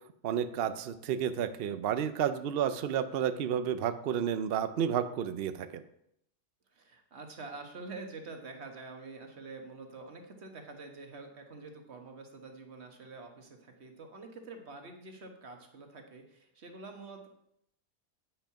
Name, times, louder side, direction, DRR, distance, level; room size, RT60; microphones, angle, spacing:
voice 1, 0.2-5.8, right 9 dB, 90° right, 11 dB, 0.5 m, -31 dB
voice 2, 6.7-17.3, right 3 dB, 45° right, 4 dB, 1.5 m, -47 dB
9.0 x 5.6 x 5.7 m, 0.75 s
omnidirectional pair, 1.7 m